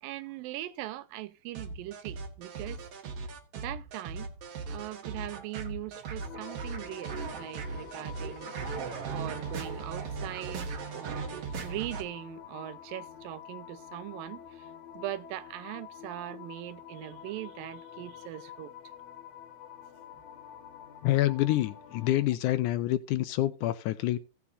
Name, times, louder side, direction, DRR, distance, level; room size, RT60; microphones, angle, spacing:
voice 1, 0.0-2.8 3.2-4.3 4.7-8.7 9.1-18.7, right 14 dB, 90° right, 2.5 m, -41 dB
sound 1, 1.5-12.0, right 5 dB, 55° right, 2.1 m, -38 dB
sound 2, 6.2-22.3, left 9 dB, 55° left, 2.3 m, -48 dB
voice 2, 21.0-24.2, left 15 dB, 75° left, 2.0 m, -27 dB
16.5 x 7.1 x 2.6 m
omnidirectional pair, 3.9 m